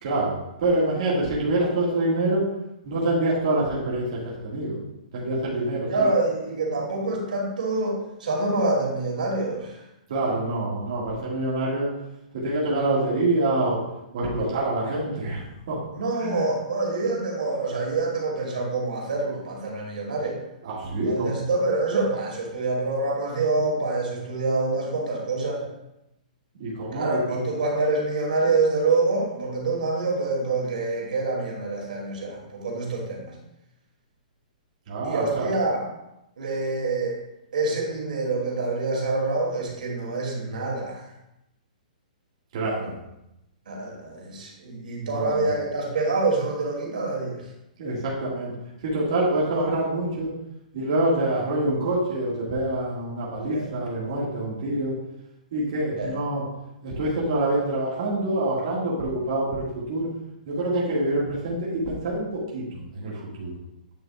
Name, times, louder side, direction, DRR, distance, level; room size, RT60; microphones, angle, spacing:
voice 1, 0.0-2.4 2.8-4.8 5.1-6.1 10.1-11.9 12.3-13.8 14.1-15.8 16.2-16.5 20.6-21.4 26.5-27.4 34.9-35.5 42.5-43.0 45.0-45.5 47.8-48.5 48.8-50.3 50.7-54.9 55.5-56.4 56.8-60.1 60.4-63.5, right 2 dB, 40° right, -6 dB, 1.9 m, -26 dB
voice 2, 5.9-9.8 15.9-20.4 21.0-25.6 26.9-33.3 35.0-35.9 36.4-37.2 37.5-41.0 42.8-42.9 43.7-47.4 53.5-53.7 56.0-56.1, right 3 dB, 80° right, -1 dB, 2.6 m, -26 dB
9.1 x 6.7 x 2.4 m, 0.86 s
hypercardioid pair, 175°, 4 cm